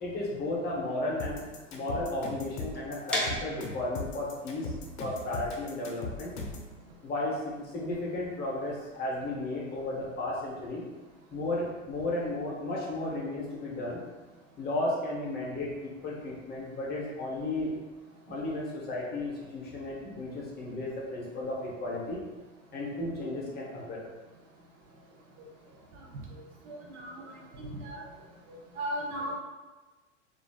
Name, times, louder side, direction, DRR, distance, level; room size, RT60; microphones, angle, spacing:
voice 1, 0.0-1.4 1.7-4.7 5.0-6.3 7.0-10.8 11.3-14.0 14.6-17.7 18.3-22.2 22.7-24.0, left 2 dB, 25° left, -4 dB, 0.8 m, -34 dB
sound 1, 1.2-6.7, left 3 dB, 60° left, 0.7 m, -39 dB
sound 2, 3.1-8.9, left 1 dB, 5° left, 0.4 m, -38 dB
voice 2, 26.7-28.0 28.5-29.4, equal, 45° right, -2 dB, 0.7 m, -37 dB
3.0 x 2.5 x 2.3 m, 1.2 s
hypercardioid pair, 100°, 37 cm